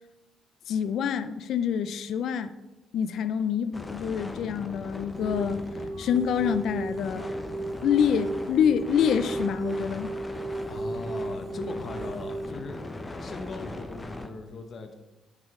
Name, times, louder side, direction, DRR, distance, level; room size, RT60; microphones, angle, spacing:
voice 1, 0.7-2.5 2.9-5.6 6.0-7.3 7.8-10.1, left 8 dB, 70° left, 0.4 m, -26 dB
sound 1, 3.7-14.3, left 2 dB, 20° left, 0.8 m, -40 dB
sound 2, 5.1-12.5, right 2 dB, 55° right, 1.0 m, -34 dB
voice 2, 10.6-12.8 13.2-14.9, left 3 dB, 50° left, 1.0 m, -39 dB
8.2 x 5.1 x 3.6 m
cardioid pair, 90°, 0 cm